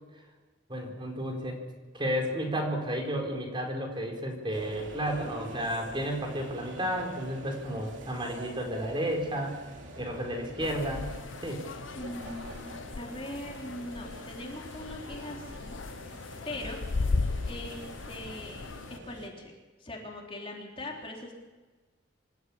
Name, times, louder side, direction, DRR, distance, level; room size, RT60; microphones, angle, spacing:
voice 1, 0.7-1.6 1.9-9.6 10.0-11.1 11.4-11.6, equal, 25° right, 2 dB, 4.4 m, -32 dB
sound 1, 4.5-19.3, right 1 dB, 75° right, 3.1 m, -46 dB
sound 2, 10.6-19.0, left 3 dB, 85° left, 0.7 m, -36 dB
voice 2, 11.9-15.8 16.4-16.8 17.5-19.5 19.8-21.3, left 1 dB, 30° left, -1 dB, 4.0 m, -41 dB
27.0 x 14.0 x 8.8 m, 1.3 s
head